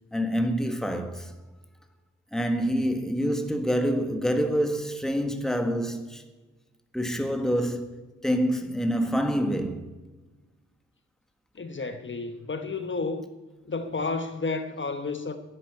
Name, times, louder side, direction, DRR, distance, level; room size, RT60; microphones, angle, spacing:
voice 1, 0.1-1.3 2.3-6.2 6.9-9.9, equal, ahead, 1.4 m, -27 dB
voice 2, 11.5-13.2 13.7-15.4, left 3 dB, 40° left, 1.0 m, -31 dB
11.5 x 10.0 x 9.8 m
wide cardioid pair, 150°, 29 cm